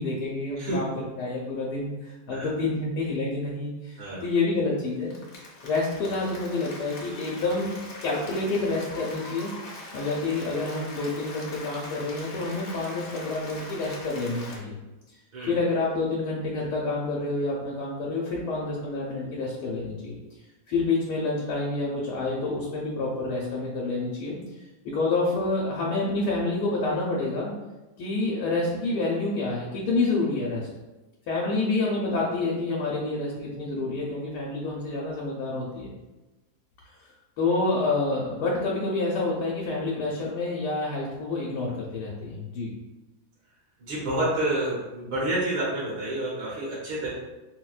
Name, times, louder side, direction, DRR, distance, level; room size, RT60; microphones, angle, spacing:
voice 1, 0.0-5.1 5.6-7.7 8.0-9.5 9.9-14.7 15.5-20.2 20.7-24.4 24.8-27.5 28.0-30.7 31.3-35.9 37.4-42.8, left 3 dB, 80° left, -3 dB, 1.2 m, -28 dB
Applause, 4.9-14.6, left 2 dB, 65° left, 1.1 m, -42 dB
voice 2, 43.8-47.1, right 1 dB, 75° right, -6 dB, 1.4 m, -29 dB
4.3 x 2.1 x 2.3 m, 1.1 s
omnidirectional pair, 1.7 m